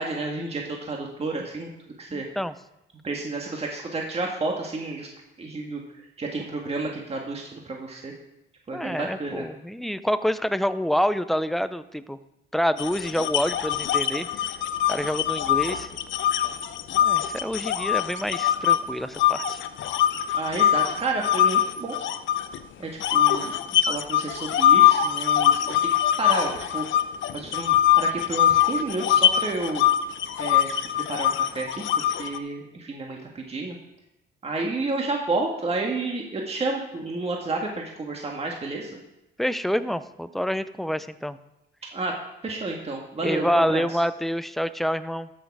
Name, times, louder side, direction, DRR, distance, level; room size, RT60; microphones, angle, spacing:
voice 1, 0.0-1.7 2.0-2.3 3.0-5.1 5.4-5.8 6.2-8.1 8.7-9.5 20.3-21.9 22.8-25.8 26.2-26.9 27.3-29.8 30.4-30.7 30.9-33.8 34.4-39.0 41.9-42.1 42.4-43.9, right 3 dB, 30° right, 0 dB, 1.6 m, -30 dB
voice 2, 2.1-2.5 8.7-12.2 12.5-14.5 14.9-15.9 16.9-19.6 39.4-41.4 43.2-45.3, equal, ahead, 13 dB, 0.5 m, -27 dB
sound 1, 12.8-18.8 19.2-22.6 23.0-32.4, left 11 dB, 70° left, 0.7 m, -22 dB
13.0 x 6.4 x 4.8 m, 0.92 s
cardioid pair, 90°, 20 cm